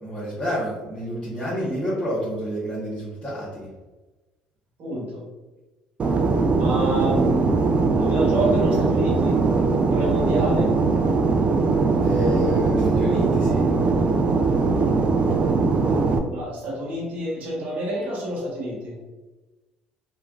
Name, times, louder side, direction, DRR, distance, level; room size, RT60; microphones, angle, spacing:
voice 1, 0.0-3.7 12.0-13.6, equal, 30° left, -10 dB, 1.1 m, -29 dB
voice 2, 4.8-5.2 6.5-7.6 7.9-9.4 9.9-10.7 16.2-19.0, right 1 dB, 60° right, -4 dB, 1.2 m, -28 dB
Fixed-wing aircraft airplane, 6.0-16.2, right 4 dB, 35° right, 0.3 m, -20 dB
3.0 x 2.3 x 2.4 m, 1.1 s
supercardioid pair, 75°, 3 cm